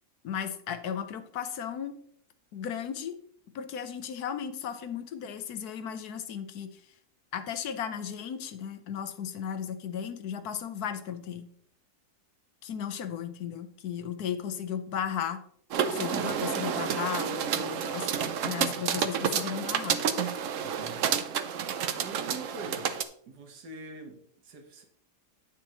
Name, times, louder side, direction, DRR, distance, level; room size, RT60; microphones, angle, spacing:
voice 1, 0.2-2.0 2.5-3.2 3.5-6.8 7.3-11.5 12.6-15.4 15.9-20.0, left 8 dB, 70° left, 10 dB, 1.3 m, -35 dB
sound 1, 15.7-23.0, right 8 dB, 60° right, 0.9 m, -30 dB
voice 2, 16.1-16.4 20.6-21.1 22.0-22.9 23.3-24.8, right 3 dB, 80° right, 4 dB, 1.8 m, -44 dB
9.9 x 6.9 x 3.0 m, 0.64 s
omnidirectional pair, 1.7 m